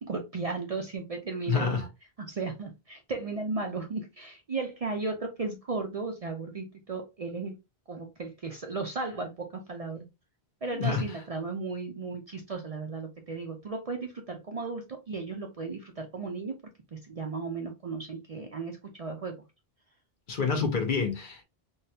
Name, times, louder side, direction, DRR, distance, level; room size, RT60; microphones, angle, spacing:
voice 1, 0.0-1.9 2.2-7.5 7.9-10.1 10.6-16.6 16.9-19.4, right 3 dB, 45° right, 0.5 m, -35 dB
voice 2, 1.5-1.9 10.7-11.1 20.3-21.4, left 5 dB, 55° left, 0.9 m, -28 dB
3.6 x 2.2 x 2.6 m
omnidirectional pair, 1.0 m